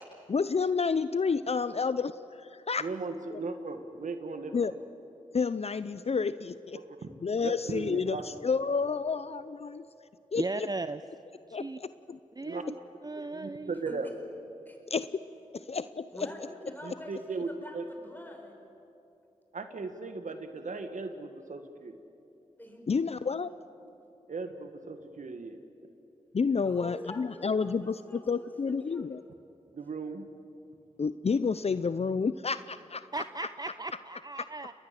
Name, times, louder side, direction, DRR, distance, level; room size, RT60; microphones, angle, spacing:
voice 1, 0.3-2.9 3.3-3.4 4.5-4.7 5.3-6.8 7.2-9.8 10.3-10.7 11.5-12.2 14.9-15.1 15.5-16.1 22.9-23.5 26.3-29.2 31.0-33.2, left 5 dB, 50° left, 14 dB, 0.6 m, -30 dB
voice 2, 2.8-4.7 6.7-7.1 7.4-8.2 12.4-12.6 13.1-14.1 16.8-17.5 17.7-17.8 19.5-22.0 24.3-25.6 29.7-30.2, right 4 dB, 70° right, 7 dB, 1.7 m, -37 dB
voice 3, 10.4-11.0 11.6-11.8 12.4-12.7 13.0-13.8 33.1-34.7, right 3 dB, 30° right, 11 dB, 0.7 m, -36 dB
voice 4, 16.1-18.6 22.6-22.9 26.6-28.5 28.9-29.0, left 1 dB, 15° left, 2 dB, 6.3 m, -45 dB
29.0 x 20.5 x 7.7 m, 2.8 s
cardioid pair, 40°, 13 cm